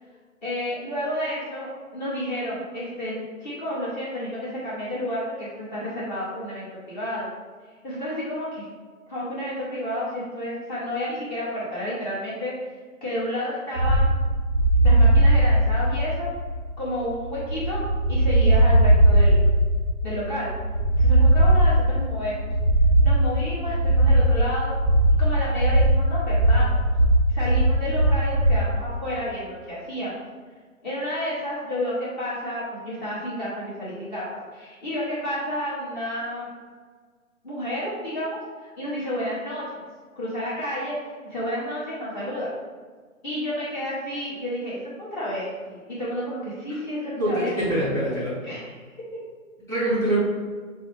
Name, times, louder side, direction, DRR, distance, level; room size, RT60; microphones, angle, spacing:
voice 1, 0.4-7.3 7.8-8.6 9.1-12.5 13.0-14.1 14.8-16.3 16.8-17.8 18.1-19.5 20.0-20.5 21.0-22.5 23.0-24.8 25.2-26.9 27.3-30.1 30.8-36.5 37.4-39.8 40.2-41.0 41.3-42.5 43.2-47.8 48.5-48.9, equal, 30° left, -8 dB, 1.2 m, -30 dB
sound 1, 13.8-28.7, right 1 dB, 25° right, 0.5 m, -19 dB
voice 2, 47.2-48.4 49.7-50.2, right 1 dB, 5° left, -13 dB, 1.2 m, -24 dB
5.4 x 2.1 x 3.3 m, 1.5 s
figure-of-eight pair, 140°, 42 cm